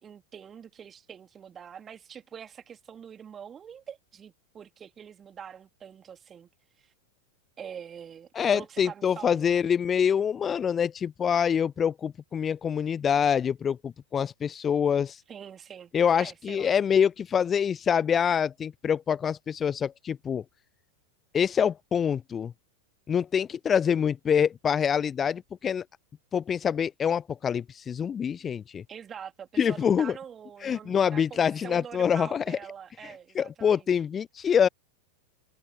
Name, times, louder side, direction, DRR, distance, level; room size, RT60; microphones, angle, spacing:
voice 1, 0.0-6.5 6.8-6.9 7.6-9.7 15.3-15.9 16.2-16.7 28.9-34.0, right 8 dB, 25° right, 2.9 m, -44 dB
voice 2, 8.4-15.2 15.9-20.4 21.3-22.5 23.1-25.8 26.3-28.8 29.6-30.1 30.6-32.6 33.0-34.7, left 7 dB, 20° left, 0.4 m, -25 dB
figure-of-eight pair, 90°, 0 cm